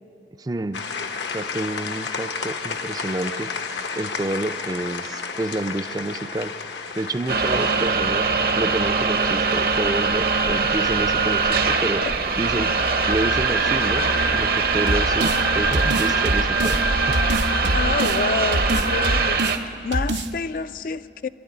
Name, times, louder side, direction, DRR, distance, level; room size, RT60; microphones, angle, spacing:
voice 1, 0.4-0.8 1.3-6.5 7.0-8.3 8.6-12.0 12.4-12.7 13.0-14.0 14.3-16.8 17.1-17.2 17.6-17.8, right 1 dB, 20° right, 0.4 m, -29 dB
sound 1, 0.7-7.9, left 5 dB, 80° left, 1.0 m, -32 dB
sound 2, 7.3-19.6, right 4 dB, 55° right, 0.8 m, -22 dB
sound 3, 14.9-15.4 15.7-16.8 17.1-18.2 18.5-19.6 19.9-20.3, right 1 dB, 85° right, 1.0 m, -25 dB
voice 2, 17.7-19.4 19.8-21.3, left 4 dB, 50° left, 0.4 m, -28 dB
23.5 x 12.0 x 9.5 m
head